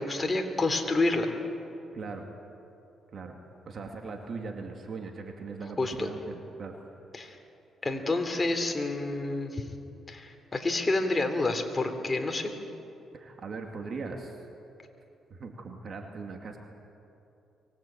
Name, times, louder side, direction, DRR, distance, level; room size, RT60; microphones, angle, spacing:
voice 1, 0.0-1.4 5.8-6.1 7.1-7.4 7.8-9.6 10.1-12.5, left 2 dB, 25° left, 5 dB, 3.0 m, -28 dB
voice 2, 1.9-2.3 3.1-3.4 3.7-6.8 13.1-14.4 15.3-16.6, right 4 dB, 50° right, 3 dB, 2.5 m, -39 dB
24.0 x 17.5 x 8.8 m, 2.8 s
cardioid pair, 90°, 0 cm